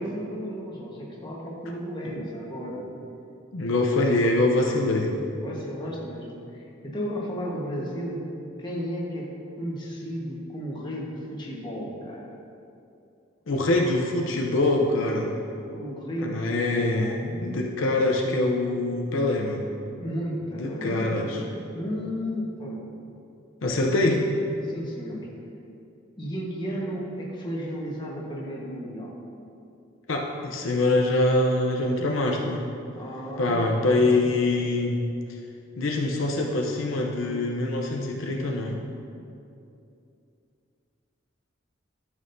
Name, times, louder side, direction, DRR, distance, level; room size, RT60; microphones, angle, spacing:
voice 1, 0.0-2.8 5.4-9.3 9.6-12.2 15.3-17.1 20.0-21.4 21.7-22.9 24.6-25.3 26.2-29.1 32.9-34.2, equal, 20° left, -4 dB, 1.3 m, -34 dB
voice 2, 3.5-5.2 13.5-15.4 16.2-19.6 20.5-21.4 23.6-24.2 30.1-32.7 33.4-35.0 35.8-38.8, left 2 dB, 75° left, 0 dB, 0.7 m, -24 dB
12.0 x 6.3 x 2.7 m, 2.6 s
head